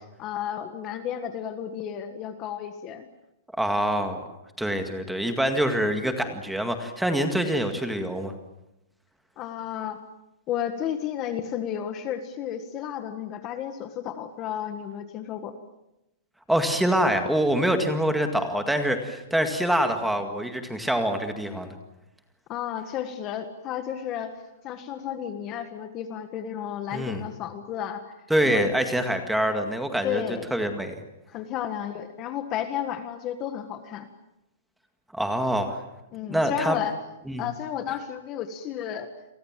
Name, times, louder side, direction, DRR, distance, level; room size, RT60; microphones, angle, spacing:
voice 1, 0.2-3.1 9.4-10.0 10.5-15.5 22.5-24.4 24.6-28.1 28.4-28.7 30.0-30.5 31.3-34.1 36.1-36.9 37.4-39.1, left 9 dB, 20° left, 9 dB, 1.6 m, -32 dB
voice 2, 3.6-4.3 4.6-8.3 16.5-21.7 26.9-27.2 28.3-30.2 30.5-31.0 35.1-35.8 36.3-36.8 37.3-37.5, right 1 dB, ahead, 6 dB, 2.0 m, -25 dB
29.5 x 23.5 x 7.5 m, 0.91 s
hypercardioid pair, 175°, 0 cm